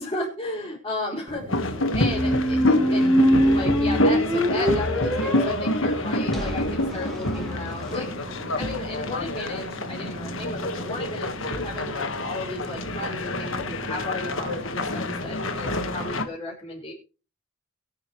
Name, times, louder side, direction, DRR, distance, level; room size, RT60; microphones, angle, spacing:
voice 1, 0.0-16.9, left 2 dB, 25° left, -7 dB, 5.3 m, -35 dB
sound 1, 1.3-16.1, right 1 dB, 40° right, 3.0 m, -40 dB
sound 2, 1.5-16.2, left 1 dB, 65° left, 1.5 m, -27 dB
sound 3, 2.0-8.0, equal, ahead, 2.8 m, -24 dB
24.0 x 8.9 x 3.2 m, 0.34 s
head